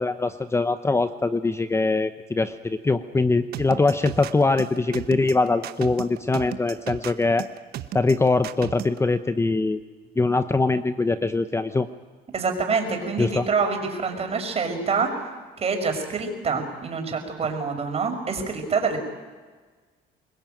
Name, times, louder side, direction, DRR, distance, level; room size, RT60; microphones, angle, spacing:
voice 1, 0.0-7.5 7.9-9.8 10.2-11.9 13.2-13.5, left 3 dB, 15° left, 11 dB, 0.9 m, -22 dB
sound 1, 3.5-9.0, right 12 dB, 65° right, 1.3 m, -35 dB
voice 2, 12.3-15.1 15.6-19.0, right 5 dB, 35° right, 4 dB, 5.8 m, -26 dB
25.5 x 21.0 x 9.1 m, 1.4 s
cardioid pair, 110°, 17 cm